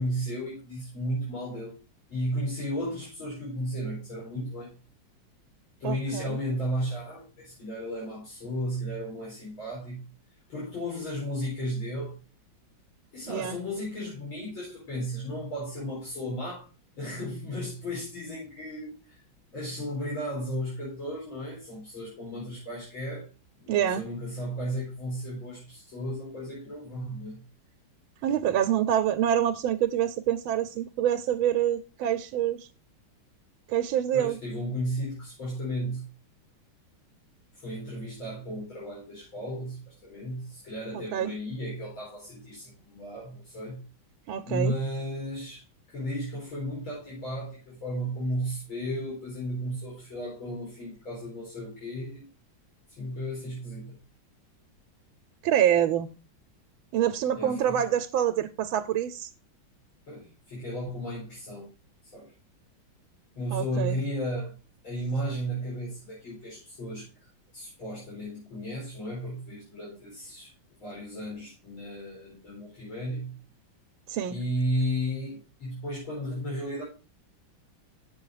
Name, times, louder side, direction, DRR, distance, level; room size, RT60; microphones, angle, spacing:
voice 1, 0.0-1.8 2.1-4.8 5.8-10.0 10.5-12.1 13.1-16.7 17.0-19.2 19.5-23.3 23.6-27.4 34.1-36.1 37.6-43.8 44.4-45.6 45.9-52.3 53.0-54.0 57.3-57.8 60.1-61.7 62.1-62.3 63.4-64.5 64.8-67.1 67.5-70.5 70.8-73.4 74.3-76.8, equal, 75° left, -7 dB, 5.3 m, -34 dB
voice 2, 5.8-6.4 13.3-13.6 23.7-24.0 28.2-32.7 33.7-34.4 40.9-41.3 44.3-44.7 55.4-56.1 56.9-59.3 63.5-64.0 74.1-74.4, right 10 dB, 80° right, 8 dB, 1.4 m, -26 dB
8.3 x 7.1 x 4.7 m, 0.32 s
omnidirectional pair, 2.2 m